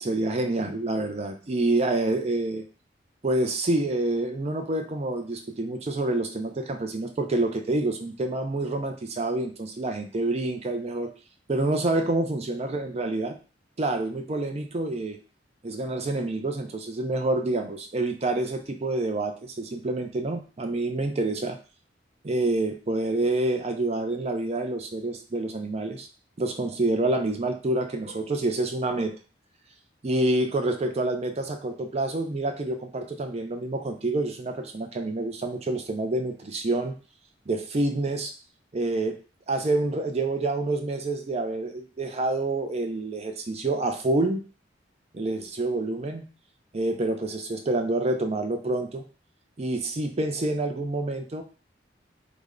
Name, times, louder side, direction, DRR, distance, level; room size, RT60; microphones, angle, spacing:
voice 1, 0.0-2.6 3.2-11.1 11.5-13.3 13.8-15.2 15.6-21.6 22.2-26.1 26.4-29.1 30.0-37.0 37.5-38.3 38.7-39.2 39.5-44.4 45.1-46.3 46.7-49.0 49.6-51.4, right 2 dB, 35° right, 6 dB, 0.5 m, -27 dB
3.4 x 2.2 x 3.6 m, 0.35 s
head